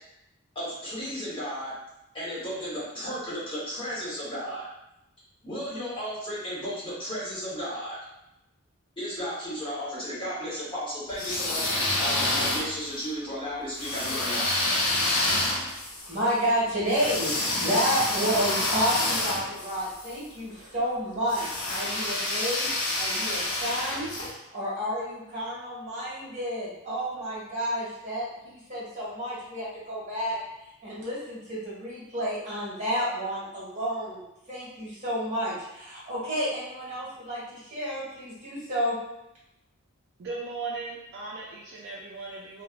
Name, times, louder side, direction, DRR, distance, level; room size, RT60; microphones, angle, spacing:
voice 1, 0.5-1.7 2.1-4.6 5.4-8.0 9.0-14.5, equal, 25° left, -9 dB, 1.1 m, -34 dB
sound 1, 11.1-13.0 13.8-20.1 21.3-24.3, left 2 dB, 80° left, 0.6 m, -28 dB
voice 2, 16.1-17.3 17.6-30.4 30.8-34.2 34.5-39.0, equal, 35° right, -8 dB, 1.5 m, -30 dB
voice 3, 40.2-42.6, right 3 dB, 50° right, -3 dB, 0.3 m, -37 dB
3.1 x 2.0 x 2.3 m, 0.87 s
head